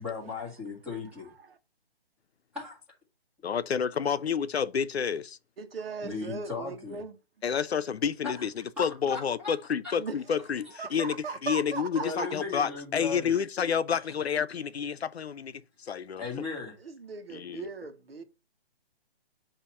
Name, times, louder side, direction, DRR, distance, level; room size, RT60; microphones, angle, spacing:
voice 1, 0.0-1.3 2.5-2.8 6.0-7.0 8.2-8.5 8.8-9.6 9.8-10.0 12.0-13.4 13.9-14.0 16.2-16.8, left 4 dB, 5° right, 1.9 m, -37 dB
voice 2, 3.4-5.4 7.4-11.2 11.4-16.2 17.3-17.7, left 7 dB, 80° left, 0.7 m, -29 dB
voice 3, 5.6-7.2 10.0-10.2 10.8-12.3 16.8-18.2, right 4 dB, 65° right, 1.2 m, -38 dB
8.5 x 2.9 x 5.5 m
hypercardioid pair, 165°, 31 cm